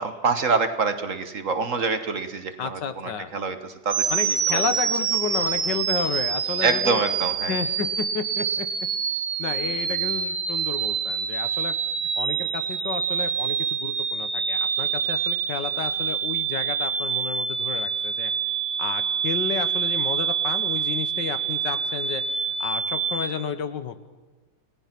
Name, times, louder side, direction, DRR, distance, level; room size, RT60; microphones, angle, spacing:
voice 1, 0.0-4.6 6.6-7.6, right 4 dB, 50° right, 9 dB, 1.5 m, -26 dB
voice 2, 2.6-3.3 4.1-7.0 7.5-8.7 9.4-11.7 12.2-18.3 18.8-22.2 22.6-24.0, left 7 dB, 75° left, 11 dB, 1.8 m, -31 dB
sound 1, 3.9-23.3, right 7 dB, 80° right, 2.0 m, -26 dB
29.5 x 17.5 x 6.0 m, 1.3 s
omnidirectional pair, 1.9 m